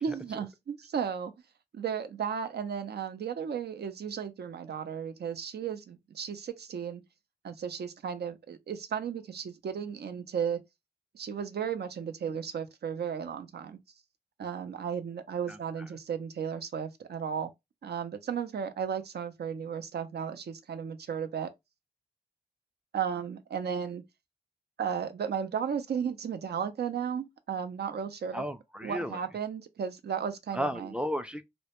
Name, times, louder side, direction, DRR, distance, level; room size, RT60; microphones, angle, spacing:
voice 1, 0.0-1.3 1.7-7.0 7.4-10.6 11.1-13.8 14.4-17.5 17.8-21.5 22.9-24.0 24.8-28.5 28.8-30.9, right 7 dB, 75° right, 0.4 m, -34 dB
voice 2, 28.3-29.2 30.5-31.4, equal, 5° right, 0.3 m, -33 dB
2.1 x 2.1 x 2.9 m
cardioid pair, 55°, 17 cm